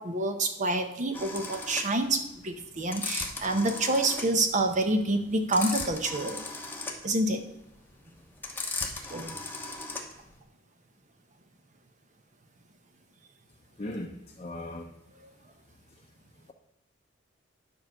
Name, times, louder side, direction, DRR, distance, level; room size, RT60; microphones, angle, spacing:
voice 1, 0.0-6.4 7.0-7.5 9.1-9.4, right 2 dB, 40° right, 7 dB, 0.9 m, -28 dB
sound 1, 1.1-10.3, left 3 dB, 10° left, 1.0 m, -37 dB
voice 2, 13.8-14.9, left 1 dB, 30° left, 1 dB, 0.7 m, -38 dB
10.0 x 4.7 x 6.5 m, 0.87 s
head